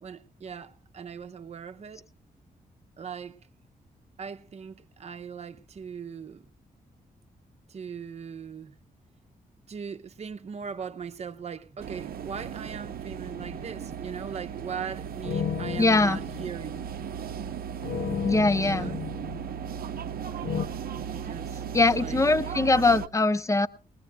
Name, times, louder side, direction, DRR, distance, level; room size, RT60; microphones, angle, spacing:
voice 1, 0.0-2.1 3.0-3.4 4.2-6.4 7.7-8.8 9.7-16.9 18.5-19.0 21.0-21.7 21.9-22.2, right 6 dB, 45° right, 0.8 m, -39 dB
sound 1, 11.8-23.1, right 8 dB, 75° right, 0.7 m, -36 dB
sound 2, 13.3-13.9 15.2-17.1 17.8-20.1 20.4-20.7, left 8 dB, 75° left, 0.7 m, -34 dB
voice 2, 15.8-16.2 18.2-18.9 21.7-23.7, left 3 dB, 20° left, 0.7 m, -22 dB
21.0 x 19.5 x 2.3 m
wide cardioid pair, 125°, 15 cm